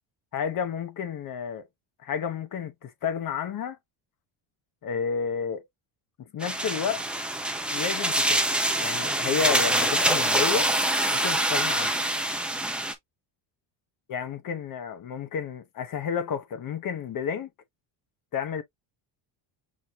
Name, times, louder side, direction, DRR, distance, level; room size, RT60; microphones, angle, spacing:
voice 1, 0.3-1.7 2.0-3.8 4.8-5.6 6.3-7.0 7.7-8.4 8.8-10.7 11.1-11.9 14.1-17.5 18.3-18.6, left 7 dB, 45° left, 1.0 m, -31 dB
sound 1, 6.4-12.9, right 1 dB, ahead, 0.5 m, -25 dB
6.3 x 2.7 x 2.3 m
cardioid pair, 130°, 48 cm